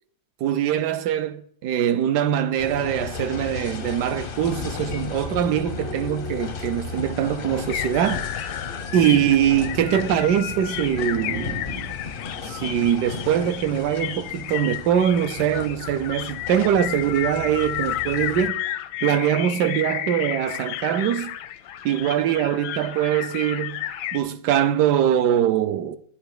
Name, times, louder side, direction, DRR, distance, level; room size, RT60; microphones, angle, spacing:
voice 1, 0.4-8.5 8.9-11.9 12.4-18.6 19.0-21.4 21.8-23.8 24.1-26.0, right 10 dB, 75° right, 1.0 m, -23 dB
sound 1, 2.6-18.5, left 5 dB, 65° left, 0.5 m, -34 dB
sound 2, 7.7-24.2, left 13 dB, 85° left, 1.4 m, -32 dB
10.5 x 7.9 x 4.8 m
omnidirectional pair, 2.1 m